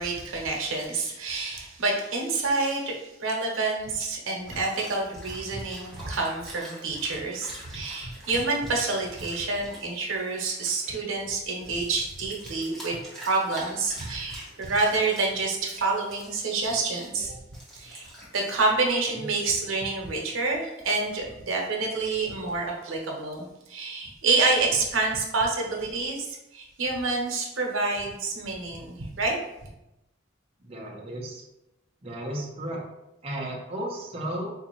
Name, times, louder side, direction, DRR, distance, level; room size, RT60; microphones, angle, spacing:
voice 1, 0.0-17.3 17.7-29.4, right 3 dB, 85° right, 0 dB, 0.8 m, -28 dB
sound 1, 4.5-10.9 11.4-17.1 17.5-18.7, right 1 dB, ahead, 0.8 m, -46 dB
voice 2, 30.6-31.4 32.0-32.8 33.2-34.5, right 1 dB, 30° right, -3 dB, 0.6 m, -34 dB
3.8 x 2.5 x 3.0 m, 0.89 s
head